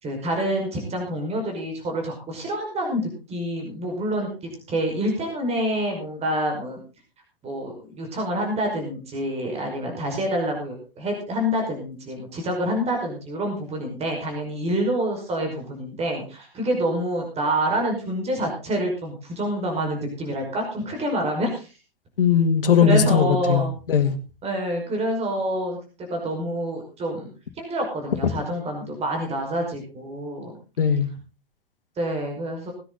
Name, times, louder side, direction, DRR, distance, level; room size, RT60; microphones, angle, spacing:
voice 1, 0.0-4.3 4.7-6.8 7.4-21.7 22.8-23.7 24.4-25.8 26.1-27.3 27.6-30.5 32.0-32.7, right 1 dB, 20° right, 2 dB, 5.2 m, -27 dB
voice 2, 22.2-24.2 30.8-31.1, left 7 dB, 65° left, 9 dB, 2.2 m, -19 dB
19.0 x 10.0 x 4.0 m, 0.34 s
figure-of-eight pair, 105°, 30 cm